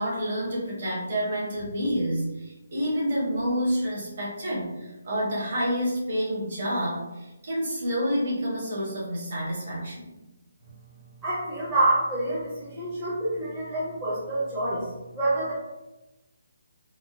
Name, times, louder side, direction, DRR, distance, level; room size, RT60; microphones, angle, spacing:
voice 1, 0.0-10.1, equal, 40° right, -6 dB, 1.2 m, -28 dB
voice 2, 11.2-14.9 15.1-15.5, right 2 dB, 10° right, -12 dB, 0.6 m, -27 dB
3.5 x 2.2 x 2.6 m, 1.0 s
hypercardioid pair, 175°, 0 cm